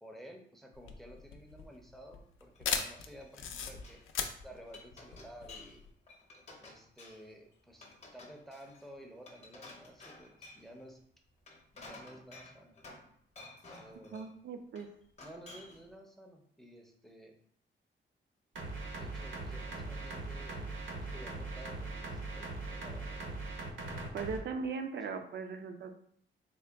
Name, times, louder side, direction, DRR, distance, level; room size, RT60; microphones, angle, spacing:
voice 1, 0.0-4.0 4.4-5.9 6.6-7.9 8.1-11.0 11.7-12.8 13.7-14.3 15.2-17.4 19.0-23.3 25.0-25.2, equal, ahead, 2 dB, 0.5 m, -53 dB
sound 1, 0.7-5.9, left 7 dB, 90° left, 0.4 m, -38 dB
Glass, 2.5-3.4 3.7-4.0 4.5-5.8 6.1-7.3 7.8-10.7 11.3-13.1 13.4-14.3 14.8-15.9, left 2 dB, 35° left, 0.7 m, -53 dB
voice 2, 14.1-14.9 24.1-25.9, right 5 dB, 65° right, 6 dB, 0.4 m, -39 dB
sound 2, 18.5-24.4, right 2 dB, 80° right, 0.8 m, -40 dB
3.6 x 2.2 x 3.4 m, 0.63 s
wide cardioid pair, 125°, 20 cm